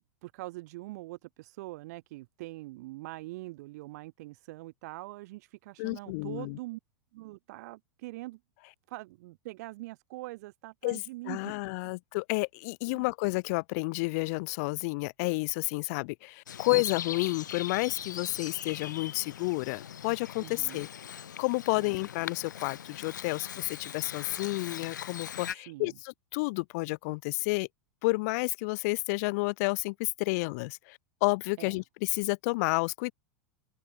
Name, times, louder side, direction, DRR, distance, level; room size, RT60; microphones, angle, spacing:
voice 1, 0.0-6.8 7.1-8.4 8.9-11.5 11.8-11.9 12.9-13.0 20.4-20.8 21.8-22.0 25.1-25.2 25.5-26.0 31.6-31.7, right 20 dB, 65° right, 2.4 m, -43 dB
voice 2, 5.8-6.6 10.8-11.0 11.3-20.9 21.4-27.7 28.0-33.1, left 27 dB, 60° left, 2.2 m, -31 dB
Bird vocalization bird call bird song, 16.5-25.5, left 9 dB, 85° left, 2.0 m, -41 dB
open air
hypercardioid pair, 100°, 10 cm